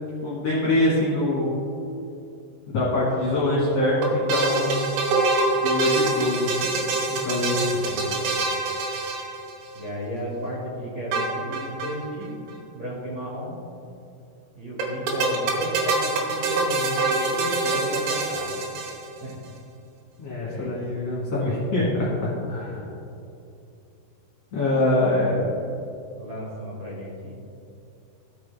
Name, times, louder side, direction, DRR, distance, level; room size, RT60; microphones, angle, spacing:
voice 1, 0.2-1.5 2.7-4.8 5.5-6.8 7.1-7.8 20.2-22.8 24.5-25.5, left 1 dB, 50° left, -8 dB, 2.3 m, -24 dB
sound 1, 4.0-9.8 11.1-12.0 12.2-12.3 12.5-12.6 14.8-19.3, right 3 dB, 80° right, 3.2 m, -25 dB
voice 2, 7.6-8.3 9.7-13.6 14.5-18.6 19.2-19.4 20.3-20.7 22.5-22.9 24.8-25.5 26.2-27.4, equal, 45° right, -6 dB, 2.9 m, -34 dB
15.0 x 6.1 x 3.5 m, 2.6 s
omnidirectional pair, 4.9 m